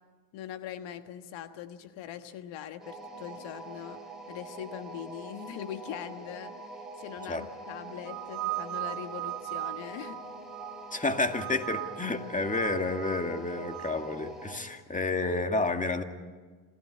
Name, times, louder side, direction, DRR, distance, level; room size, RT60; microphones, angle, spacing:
voice 1, 0.3-4.0 4.3-6.5 7.0-10.2, left 10 dB, 70° left, 9 dB, 1.5 m, -41 dB
sound 1, 2.8-14.7, right 2 dB, ahead, 5.0 m, -44 dB
sound 2, 8.1-11.0 11.3-12.1 12.5-14.0, right 19 dB, 70° right, 1.2 m, -38 dB
voice 2, 10.9-16.0, left 3 dB, 15° left, 6 dB, 2.1 m, -30 dB
27.0 x 16.0 x 8.7 m, 1.4 s
supercardioid pair, 75°, 47 cm